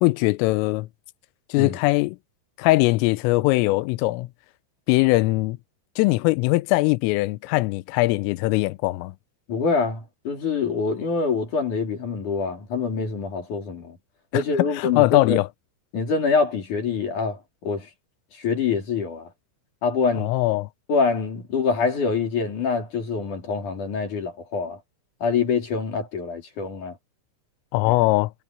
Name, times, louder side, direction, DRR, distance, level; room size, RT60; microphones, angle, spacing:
voice 1, 0.0-0.9 1.5-2.2 2.6-4.3 4.9-5.6 6.0-9.1 14.3-14.4 14.8-15.5 20.2-20.7 27.7-28.3, left 21 dB, 85° left, 3.3 m, -21 dB
voice 2, 9.5-14.0 14.3-15.4 15.9-17.9 18.4-19.3 19.8-20.3 20.9-24.8 25.2-27.0 27.8-27.9, left 5 dB, 40° left, 4.4 m, -25 dB
omnidirectional pair, 5.8 m